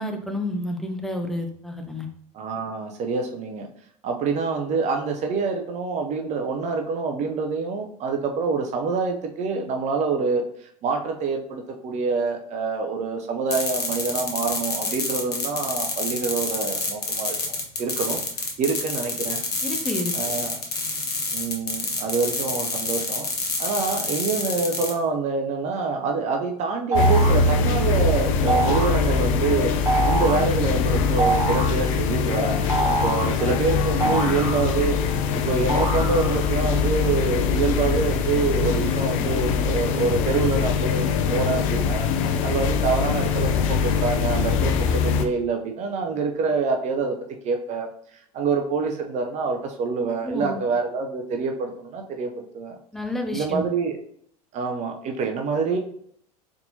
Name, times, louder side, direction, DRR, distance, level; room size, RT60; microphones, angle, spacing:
voice 1, 0.0-2.1 19.6-20.1 50.2-50.6 52.9-53.7, left 1 dB, ahead, 4 dB, 0.6 m, -29 dB
voice 2, 2.3-3.7 4.0-19.4 20.1-20.6 21.3-23.3 23.6-32.7 33.0-35.0 35.3-42.1 42.4-47.2 47.4-52.8 53.3-54.0 54.5-55.8, right 4 dB, 35° right, 3 dB, 0.6 m, -26 dB
sound 1, 13.5-24.9, left 3 dB, 80° left, 0.9 m, -28 dB
sound 2, 26.9-45.2, left 5 dB, 60° left, 0.5 m, -23 dB
sound 3, 26.9-27.5 28.5-29.0 29.9-30.5 31.2-31.8 32.7-33.4 34.0-35.0 35.7-36.5, right 3 dB, 15° right, 1.1 m, -25 dB
4.2 x 3.5 x 2.7 m, 0.66 s
figure-of-eight pair, 75°, 20 cm